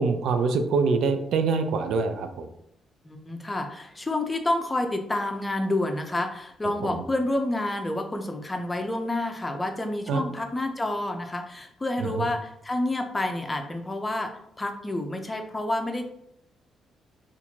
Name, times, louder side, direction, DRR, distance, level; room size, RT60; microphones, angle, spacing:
voice 1, 0.0-2.5 6.8-7.0 10.1-10.2 12.0-12.3, right 4 dB, 80° right, 8 dB, 0.4 m, -25 dB
voice 2, 3.0-14.3 14.6-16.0, left 1 dB, 20° left, 5 dB, 0.5 m, -29 dB
4.3 x 2.5 x 2.8 m, 0.74 s
cardioid pair, 105°, 0 cm